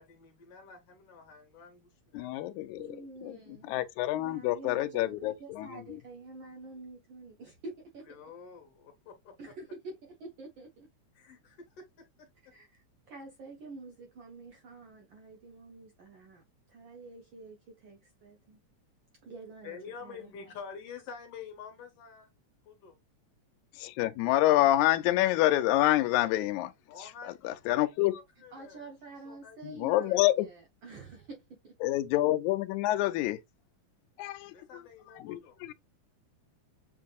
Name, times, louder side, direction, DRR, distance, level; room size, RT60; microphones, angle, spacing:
voice 1, 0.0-2.8 8.1-9.4 11.1-12.3 19.6-22.3 22.6-23.0 26.9-27.5 27.8-28.9 29.3-29.6 29.9-30.2 34.5-35.6, left 6 dB, 65° left, 1.8 m, -48 dB
voice 2, 2.1-3.0 3.2-3.4 3.7-5.7 23.8-26.7 27.4-28.2 29.6-30.5 31.8-33.4 34.2-34.5 35.2-35.7, left 15 dB, 85° left, 2.0 m, -27 dB
voice 3, 2.7-3.7 4.2-8.1 9.4-10.9 12.5-18.6 19.2-20.5 28.5-31.7, right 3 dB, 90° right, 1.0 m, -48 dB
7.2 x 2.7 x 2.3 m
omnidirectional pair, 3.3 m